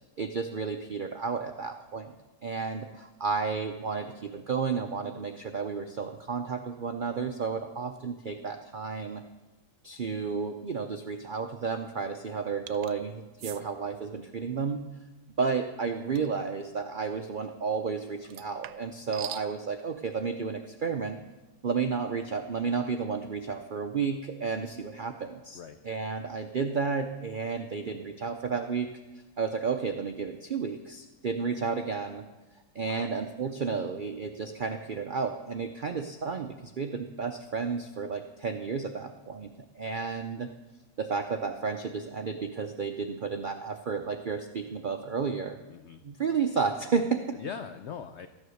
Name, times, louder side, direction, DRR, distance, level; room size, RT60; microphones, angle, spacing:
voice 1, 0.2-2.1 2.4-9.2 9.8-14.8 15.4-21.2 21.6-28.9 29.4-32.2 32.7-40.5 41.0-45.6 46.0-47.2, right 5 dB, 65° right, 6 dB, 0.5 m, -32 dB
sound 1, 12.7-12.9 13.4-13.6 16.1-16.4 18.2-19.5, right 10 dB, 85° right, 1.2 m, -41 dB
voice 2, 32.8-33.2 45.7-46.0 47.3-48.3, left 7 dB, 60° left, 9 dB, 0.7 m, -42 dB
14.0 x 9.6 x 6.4 m, 1.2 s
omnidirectional pair, 1.7 m